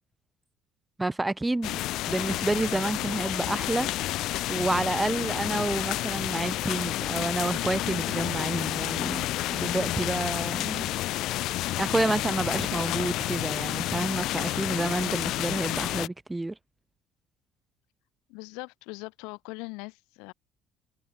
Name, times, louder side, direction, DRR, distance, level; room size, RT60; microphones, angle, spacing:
voice 1, 1.0-3.9 4.5-10.9 11.8-16.5, right 2 dB, 10° right, 0.9 m, -29 dB
sound 1, 1.6-16.1, left 15 dB, 65° left, 0.6 m, -30 dB
voice 2, 18.3-20.3, left 29 dB, 90° left, 2.9 m, -41 dB
cardioid pair, 130°, 0 cm